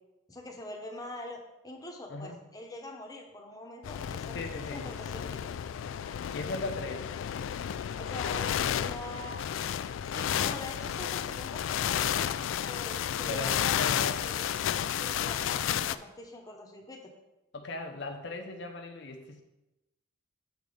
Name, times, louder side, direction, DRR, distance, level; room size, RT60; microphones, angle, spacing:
voice 1, 0.3-4.4 4.7-5.5 8.0-9.4 10.1-12.1 12.7-14.6 15.0-17.1, left 1 dB, 20° left, 2 dB, 0.9 m, -44 dB
sound 1, 3.8-16.0, left 9 dB, 80° left, 0.3 m, -32 dB
voice 2, 4.3-4.8 6.3-7.1 13.3-14.2 17.5-19.4, left 2 dB, 60° left, 2 dB, 0.7 m, -37 dB
6.9 x 4.0 x 6.4 m, 0.99 s
head